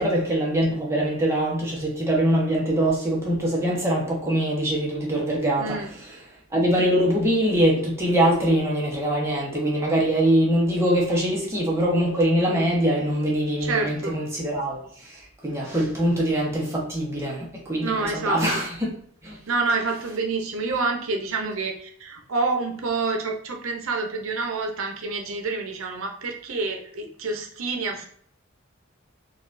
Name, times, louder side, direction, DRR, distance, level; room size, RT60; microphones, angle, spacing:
voice 1, 0.0-5.8 6.5-19.0 19.2-19.4, right 1 dB, 15° right, 0.9 m, -23 dB
voice 2, 5.6-5.9 13.6-14.2 17.8-18.6 19.5-28.1, right 3 dB, 85° right, 0.7 m, -28 dB
4.0 x 2.4 x 2.5 m
head